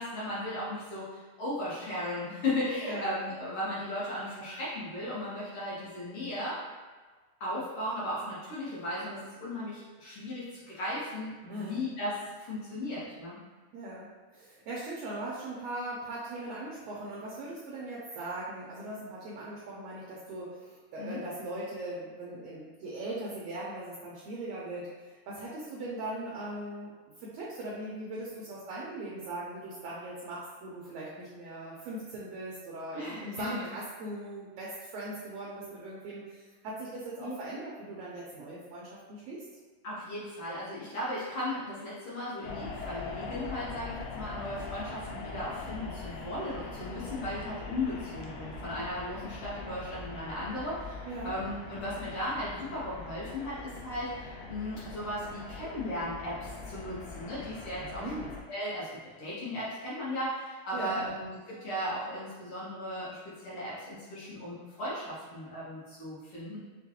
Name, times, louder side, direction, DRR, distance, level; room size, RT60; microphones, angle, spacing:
voice 1, 0.0-6.7 7.4-13.4 21.0-21.2 32.9-33.7 37.2-37.3 39.8-58.1 58.5-66.6, left 1 dB, 65° left, -8 dB, 1.4 m, -36 dB
voice 2, 13.7-26.9 27.2-39.4 51.1-51.3 57.8-58.3 60.7-61.0, right 1 dB, 80° right, -5 dB, 1.5 m, -40 dB
sound 1, 42.4-58.4, left 3 dB, 80° left, 2.1 m, -42 dB
6.4 x 2.2 x 2.8 m, 1.3 s
omnidirectional pair, 3.7 m